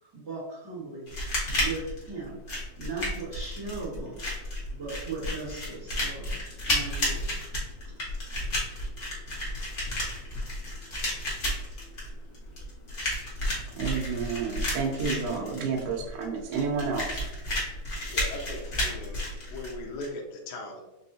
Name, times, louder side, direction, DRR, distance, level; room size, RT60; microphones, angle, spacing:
voice 1, 0.0-1.1 1.5-2.4 2.8-4.3 4.7-6.4 6.7-7.4, right 3 dB, 55° right, -9 dB, 1.2 m, -38 dB
sound 1, 1.1-20.1, left 1 dB, 50° left, 1.0 m, -32 dB
voice 2, 13.7-17.2, right 5 dB, 75° right, -1 dB, 2.0 m, -30 dB
voice 3, 18.1-20.8, left 2 dB, 80° left, 0 dB, 2.1 m, -39 dB
5.4 x 3.1 x 2.7 m, 1.0 s
omnidirectional pair, 3.9 m